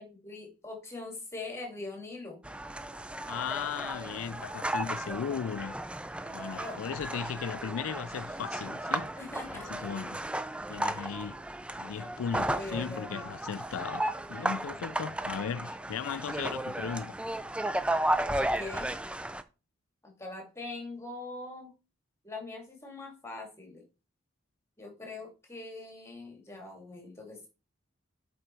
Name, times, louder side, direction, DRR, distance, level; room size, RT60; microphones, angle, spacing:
voice 1, 0.0-2.4 5.0-5.4 6.3-6.8 9.2-9.9 12.4-13.3 18.3-18.9 20.0-21.7 22.2-23.8 24.8-27.5, left 2 dB, 15° left, 2.3 m, -42 dB
sound 1, 2.4-19.4, right 1 dB, 5° right, 0.4 m, -34 dB
voice 2, 3.3-5.7 6.2-9.1 9.5-10.2 10.7-11.4 11.8-17.1, left 7 dB, 90° left, 0.4 m, -37 dB
7.9 x 5.1 x 4.5 m
head